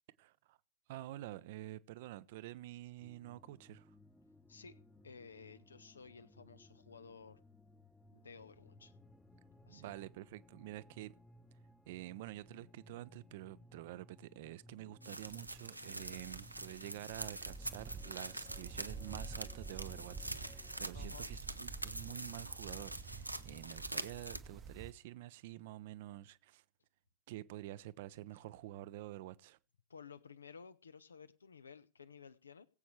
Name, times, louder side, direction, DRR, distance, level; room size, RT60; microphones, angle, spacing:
voice 1, 0.2-0.6 0.9-3.9 9.7-11.1 11.9-26.6 27.3-29.6, right 15 dB, 50° right, 0.6 m, -48 dB
sound 1, 3.0-21.0, left 1 dB, 10° left, 1.0 m, -62 dB
voice 2, 5.0-7.4 8.1-8.9 9.7-10.0 20.9-21.3 29.9-32.7, left 5 dB, 75° left, 0.9 m, -55 dB
sound 2, 15.0-24.4, right 1 dB, 85° right, 0.7 m, -45 dB
sound 3, 15.2-24.9, right 4 dB, 25° right, 0.9 m, -50 dB
20.5 x 8.2 x 3.2 m
figure-of-eight pair, 90°, 0 cm